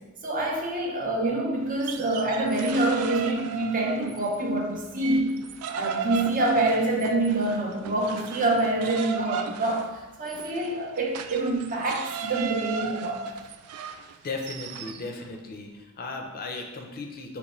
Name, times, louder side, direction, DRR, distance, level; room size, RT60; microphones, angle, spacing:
voice 1, 0.2-5.4 5.7-13.2, right 2 dB, 40° right, 0 dB, 0.6 m, -26 dB
sound 1, 1.7-4.4 4.8-15.0, right 6 dB, 80° right, 0.3 m, -35 dB
voice 2, 14.2-17.4, left 3 dB, 40° left, 2 dB, 0.5 m, -36 dB
5.1 x 3.0 x 3.0 m, 1.1 s
head